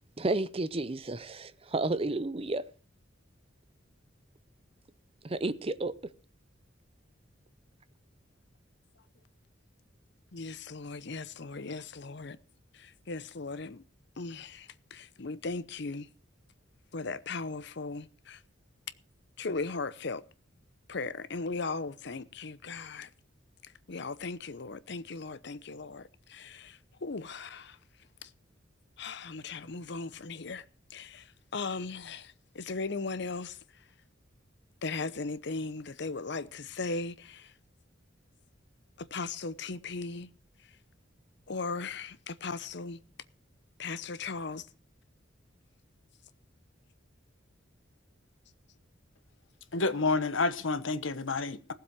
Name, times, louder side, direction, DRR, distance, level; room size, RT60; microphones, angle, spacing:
voice 1, 0.2-2.6 5.2-5.9, right 2 dB, 30° right, 0.7 m, -31 dB
voice 2, 10.3-12.4 12.7-13.8 14.2-16.1 16.9-18.4 19.4-20.2 20.9-23.1 23.6-27.8 28.2-28.3 29.0-30.6 30.9-33.6 34.8-37.5 39.0-40.3 41.5-43.0 43.8-44.7, left 3 dB, 60° left, 0.8 m, -38 dB
voice 3, 49.7-51.7, left 3 dB, 80° left, 1.1 m, -29 dB
18.0 x 7.7 x 6.1 m
head